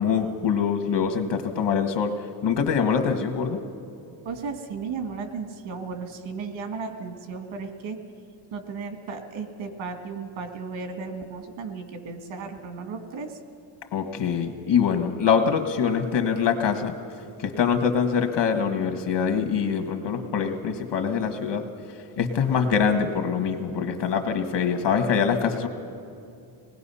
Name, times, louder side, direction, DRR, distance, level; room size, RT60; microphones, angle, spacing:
voice 1, 0.0-2.1 2.4-3.6 13.9-16.9 17.4-21.6 22.2-25.7, left 6 dB, 60° left, 7 dB, 1.6 m, -24 dB
voice 2, 4.2-8.0 8.5-13.4, right 5 dB, 80° right, 6 dB, 2.0 m, -35 dB
25.0 x 19.5 x 5.6 m, 2.6 s
cardioid pair, 125°, 47 cm